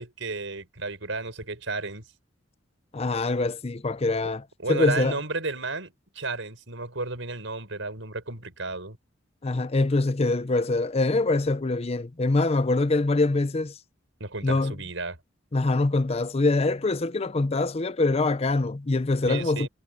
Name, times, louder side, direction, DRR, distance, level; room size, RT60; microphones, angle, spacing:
voice 1, 0.0-2.0 4.6-9.0 14.2-15.2 19.3-19.7, right 3 dB, 75° right, 5.9 m, -33 dB
voice 2, 2.9-5.2 9.4-13.7 14.4-14.7 15.5-19.7, left 2 dB, 30° left, 0.6 m, -24 dB
head